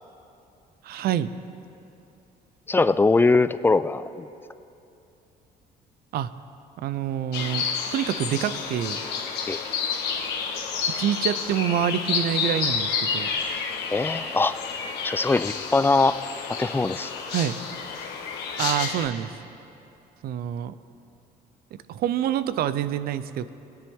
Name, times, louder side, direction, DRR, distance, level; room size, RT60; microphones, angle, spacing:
voice 1, 0.8-1.3 6.1-6.3 6.8-7.6 7.9-9.0 11.0-13.3 17.3-17.6 18.6-19.3 20.2-20.7 21.9-23.5, right 10 dB, 65° right, 14 dB, 0.6 m, -26 dB
voice 2, 2.7-4.3 9.5-9.6 13.9-14.6 15.0-16.2 16.6-17.1, left 3 dB, 15° left, 14 dB, 0.4 m, -21 dB
sound 1, 7.3-19.1, left 6 dB, 85° left, 1.4 m, -30 dB
22.0 x 10.5 x 3.6 m, 2.7 s
cardioid pair, 110°, 17 cm